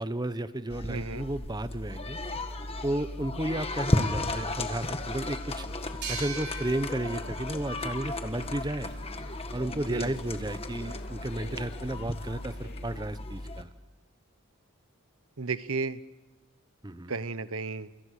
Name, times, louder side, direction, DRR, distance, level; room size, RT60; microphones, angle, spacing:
voice 1, 0.0-2.2 2.8-5.7 6.1-8.9 9.5-13.7 16.8-17.1, right 1 dB, 20° right, 13 dB, 0.9 m, -33 dB
sound 1, 0.7-13.6, left 2 dB, 25° left, 1.6 m, -34 dB
voice 2, 0.9-1.2 9.9-10.2 15.4-16.0 17.1-17.9, right 4 dB, 70° right, 14 dB, 1.1 m, -33 dB
sound 2, 4.0-13.0, left 2 dB, 45° left, 2.7 m, -52 dB
sound 3, 6.0-9.4, right 3 dB, 50° right, 5.0 m, -42 dB
30.0 x 28.5 x 6.6 m, 1.1 s
head